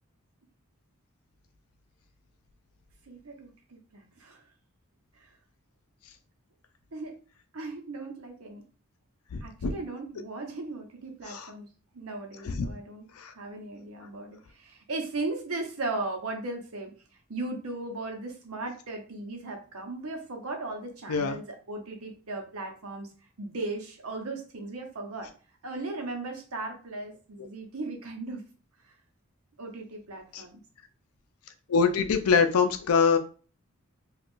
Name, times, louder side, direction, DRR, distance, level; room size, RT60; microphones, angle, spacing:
voice 1, 3.1-4.4 5.2-5.3 6.9-7.2 7.5-8.6 9.4-11.7 11.9-13.0 13.3-16.9 17.3-23.1 23.4-25.3 25.6-28.4 29.6-30.6, right 2 dB, 80° right, 3 dB, 0.8 m, -37 dB
voice 2, 9.3-9.7 11.3-11.5 12.4-12.7 13.2-13.3 21.1-21.4 30.3-30.4 31.7-33.2, left 5 dB, 85° left, 8 dB, 0.5 m, -24 dB
2.5 x 2.4 x 3.6 m, 0.38 s
head